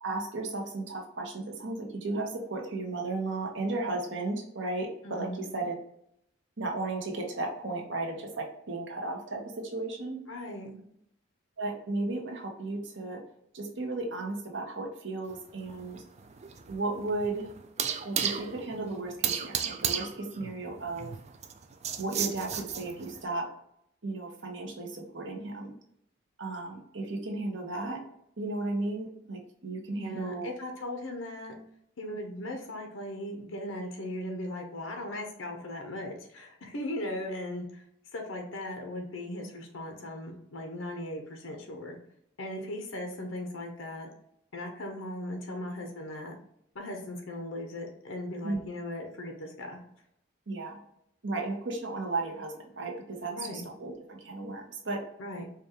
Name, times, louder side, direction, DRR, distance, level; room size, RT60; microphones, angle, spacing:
voice 1, 0.0-5.8 6.6-10.2 11.6-13.2 13.5-16.0 16.7-17.5 18.0-21.1 22.0-23.5 24.0-25.7 26.4-28.0 28.4-30.5 48.4-48.6 50.5-50.8 51.2-55.0, right 2 dB, 65° right, 1 dB, 0.9 m, -34 dB
voice 2, 5.0-5.4 10.3-10.8 30.0-31.5 32.0-37.8 38.1-42.0 42.4-44.1 44.5-46.4 46.7-49.8 53.3-53.6 55.2-55.5, left 1 dB, 85° left, 3 dB, 0.7 m, -38 dB
sound 1, 15.3-23.2, right 8 dB, 35° right, 0.3 m, -34 dB
5.0 x 2.3 x 2.9 m, 0.74 s
head